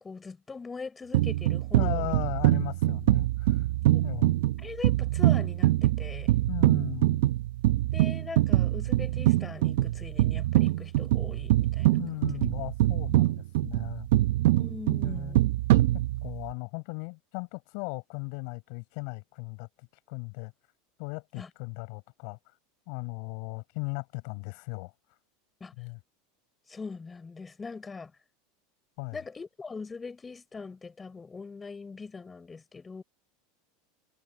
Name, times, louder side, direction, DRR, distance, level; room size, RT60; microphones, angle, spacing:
voice 1, 0.0-2.1 3.9-4.0 4.6-6.3 7.9-12.0 14.6-15.5 21.4-21.5 25.6-25.7 26.7-28.1 29.1-33.0, left 4 dB, 15° left, 5.6 m, -41 dB
sound 1, 1.1-16.5, right 15 dB, 75° right, 0.7 m, -24 dB
voice 2, 1.7-3.7 4.0-4.3 6.5-7.2 12.0-14.1 15.0-15.4 16.2-20.5 21.0-22.4 22.9-24.9 25.8-26.0 29.0-29.2, left 37 dB, 65° left, 5.1 m, -37 dB
supercardioid pair, 125°, 0 cm